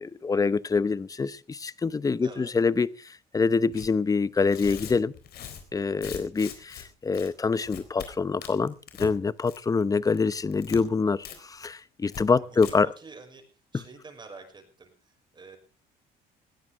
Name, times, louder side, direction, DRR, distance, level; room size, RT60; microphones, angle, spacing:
voice 1, 0.0-5.1 5.7-12.9 13.7-13.8, left 4 dB, 20° left, 0.8 m, -26 dB
voice 2, 2.2-2.5 12.3-12.7 13.0-13.4 13.7-15.6, right 4 dB, 25° right, 6.0 m, -47 dB
Tearing, 3.7-3.9 4.4-6.8 7.1-7.3 7.6-8.1 8.4-9.1 9.4-9.8 10.1-10.8 11.2-11.4 11.6-11.7 12.1-12.2 12.5-12.7, left 9 dB, 70° left, 4.1 m, -41 dB
20.0 x 15.5 x 3.6 m
cardioid pair, 110°, 17 cm